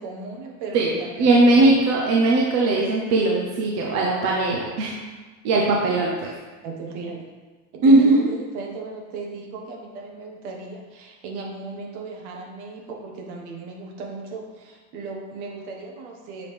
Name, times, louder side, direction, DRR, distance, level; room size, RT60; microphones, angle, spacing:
voice 1, 0.0-1.8 5.7-6.0 6.6-7.3 7.7-16.5, right 3 dB, 55° right, 0 dB, 1.6 m, -36 dB
voice 2, 0.7-4.9 5.4-6.3 7.8-8.3, right 2 dB, 35° right, -2 dB, 0.9 m, -19 dB
6.9 x 5.2 x 3.5 m, 1.3 s
supercardioid pair, 150°, 43 cm